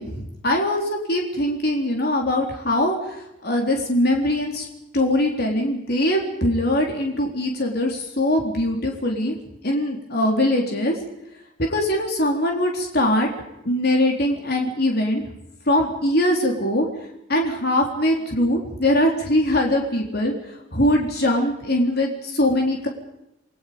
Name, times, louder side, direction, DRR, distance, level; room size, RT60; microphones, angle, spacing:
voice 1, 0.0-3.1 3.4-4.7 4.9-9.4 9.6-11.0 11.6-13.3 13.7-15.2 15.7-16.9 17.3-20.3 20.7-22.9, left 1 dB, 60° left, 1 dB, 4.0 m, -22 dB
29.5 x 21.5 x 5.3 m, 0.84 s
head